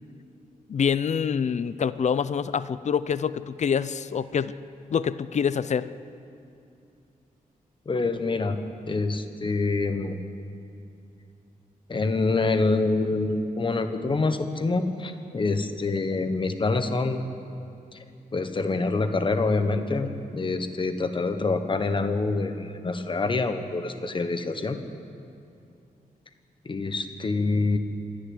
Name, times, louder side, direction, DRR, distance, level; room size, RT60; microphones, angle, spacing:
voice 1, 0.7-4.5 4.9-5.9, left 7 dB, 50° left, 15 dB, 0.6 m, -26 dB
voice 2, 7.9-8.6 8.9-10.2 11.9-17.2 17.9-18.0 18.3-24.8 26.6-27.8, left 3 dB, 35° left, 8 dB, 1.2 m, -26 dB
26.0 x 10.5 x 9.8 m, 2.7 s
wide cardioid pair, 165°, 15 cm